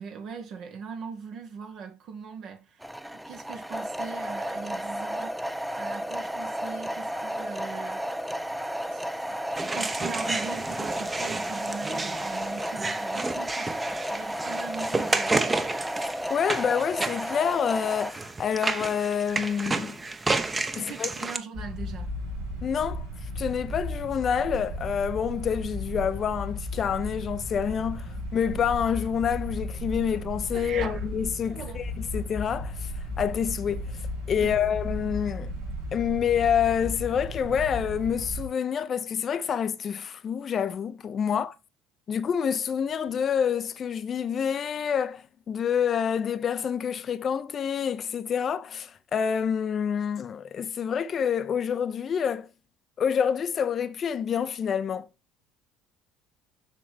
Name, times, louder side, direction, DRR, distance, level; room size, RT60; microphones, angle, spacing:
voice 1, 0.0-8.5 8.9-15.6 20.7-22.1 30.5-31.1 31.5-31.8 34.3-34.6 41.3-41.4, right 6 dB, 55° right, 1.4 m, -40 dB
sound 1, 2.8-18.1, equal, 5° right, 0.6 m, -33 dB
sound 2, 9.6-21.4, right 3 dB, 20° right, 1.0 m, -31 dB
voice 2, 16.3-20.0 20.7-21.1 22.6-23.1 23.4-32.9 33.2-34.0 34.3-35.5 35.9-41.5 42.1-52.5 53.0-55.1, left 7 dB, 45° left, 0.6 m, -27 dB
sound 3, 21.5-38.5, left 1 dB, 80° right, 3.8 m, -35 dB
7.4 x 6.0 x 3.6 m
hypercardioid pair, 65°, 0 cm